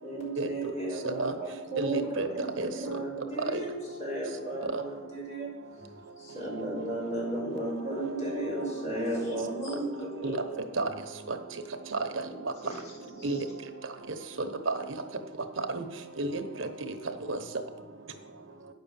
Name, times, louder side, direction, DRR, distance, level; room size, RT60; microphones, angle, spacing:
voice 1, 0.0-5.5 6.2-10.4 12.3-12.8 13.1-13.4, right 1 dB, 40° left, 4.2 m, -35 dB
voice 2, 1.8-2.3 2.6-2.7 3.5-3.6 10.2-10.4 10.8-10.9 11.9-12.0 13.2-13.4 14.4-14.7 15.7-15.8 16.2-16.9 17.3-17.4, right 3 dB, 80° right, 1.0 m, -30 dB
voice 3, 5.8-6.1 10.8-11.2 17.3-18.7, equal, 15° right, 1.5 m, -54 dB
9.5 x 6.4 x 7.3 m
head